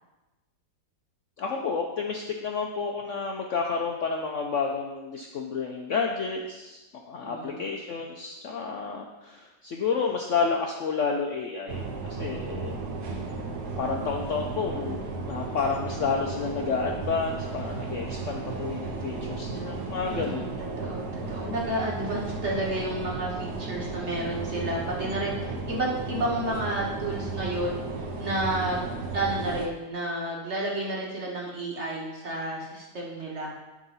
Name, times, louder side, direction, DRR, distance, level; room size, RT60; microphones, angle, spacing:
voice 1, 1.4-12.8 13.8-15.0 15.3-20.6, left 5 dB, 60° left, 1 dB, 0.8 m, -30 dB
voice 2, 7.2-7.6 20.1-27.8 28.2-33.5, right 1 dB, 40° right, -3 dB, 1.8 m, -31 dB
sound 1, 11.7-29.7, right 3 dB, 65° right, 1.4 m, -34 dB
11.0 x 3.8 x 5.5 m, 1.1 s
omnidirectional pair, 1.9 m